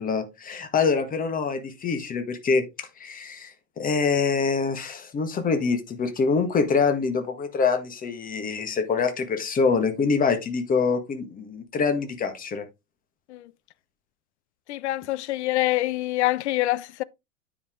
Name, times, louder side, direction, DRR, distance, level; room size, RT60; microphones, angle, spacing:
voice 1, 0.0-3.5 3.8-12.6, left 5 dB, 20° left, 1.7 m, -25 dB
voice 2, 14.7-17.0, left 17 dB, 55° left, 0.6 m, -25 dB
9.4 x 5.0 x 3.7 m
figure-of-eight pair, 95°, 41 cm